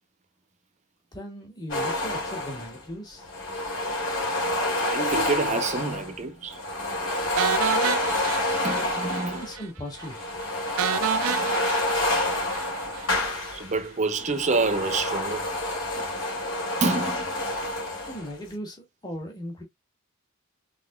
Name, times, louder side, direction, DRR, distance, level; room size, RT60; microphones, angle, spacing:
voice 1, 1.1-3.3 9.3-10.4 18.0-19.6, equal, 20° left, 1.6 m, -38 dB
sound 1, 1.7-2.8 3.2-6.2 6.5-9.6 9.9-13.8 14.1-18.4, left 1 dB, 70° left, 2.7 m, -28 dB
voice 2, 4.8-6.6 8.6-9.4 13.5-15.5 16.0-16.1 16.8-17.3, right 3 dB, 35° right, 0.5 m, -27 dB
sound 2, 7.4-9.3 9.5-9.7 10.0-10.1 10.8-13.1, right 9 dB, 80° right, 0.4 m, -29 dB
4.0 x 3.7 x 2.2 m
head